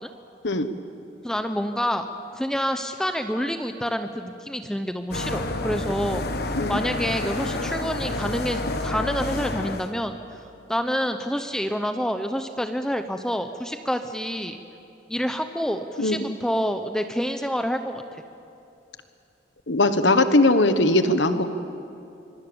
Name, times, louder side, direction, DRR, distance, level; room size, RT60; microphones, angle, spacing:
voice 1, 1.2-2.1 2.3-6.2 6.7-10.4 10.7-14.6 15.1-18.0, equal, 5° left, 7 dB, 0.7 m, -27 dB
sound 1, 5.1-9.9, left 2 dB, 60° left, 1.4 m, -29 dB
voice 2, 19.7-21.5, left 2 dB, 80° left, 10 dB, 1.4 m, -20 dB
25.5 x 23.5 x 7.1 m, 2.6 s
head